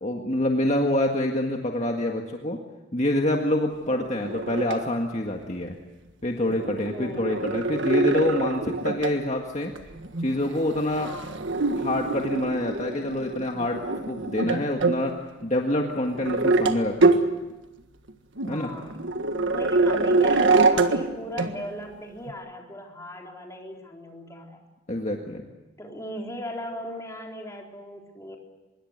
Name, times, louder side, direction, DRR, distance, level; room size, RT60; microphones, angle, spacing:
voice 1, 0.0-2.6 2.9-5.8 6.2-9.7 10.2-11.1 11.7-15.1 15.4-17.2 18.5-18.7 24.9-25.5, left 1 dB, 35° left, 2 dB, 1.8 m, -26 dB
voice 2, 3.9-4.2 6.9-7.5 11.0-11.5 18.5-19.0 19.5-24.6 25.8-28.4, equal, 15° left, 0 dB, 4.0 m, -38 dB
sound 1, 4.2-4.8 6.5-9.2 9.7-15.0 15.4-15.5 16.1-16.8 17.0-17.2 18.1-18.2 18.4-21.1 21.4-21.5 22.3-22.4, right 3 dB, 70° right, 1.6 m, -24 dB
25.5 x 22.0 x 8.1 m, 1.1 s
head